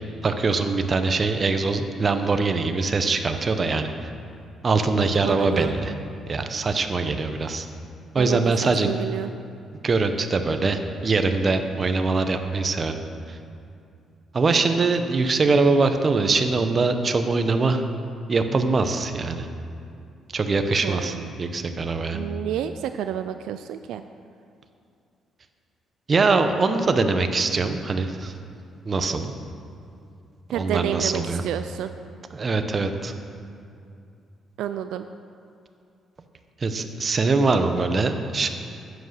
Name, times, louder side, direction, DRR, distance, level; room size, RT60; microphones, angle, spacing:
voice 1, 0.2-3.9 4.6-5.9 6.3-7.7 8.1-8.9 9.8-13.0 13.3-13.4 14.3-17.8 18.3-19.5 20.3-22.2 26.1-28.3 28.8-29.3 30.5-31.4 32.3-33.1 36.6-38.5, right 3 dB, 40° right, 7 dB, 0.9 m, -23 dB
voice 2, 4.9-5.7 8.2-8.5 8.8-9.3 20.8-21.3 22.1-24.0 30.5-31.9 34.6-35.1, right 10 dB, 85° right, 9 dB, 0.3 m, -29 dB
10.5 x 8.1 x 6.5 m, 2.5 s
cardioid pair, 90°, 0 cm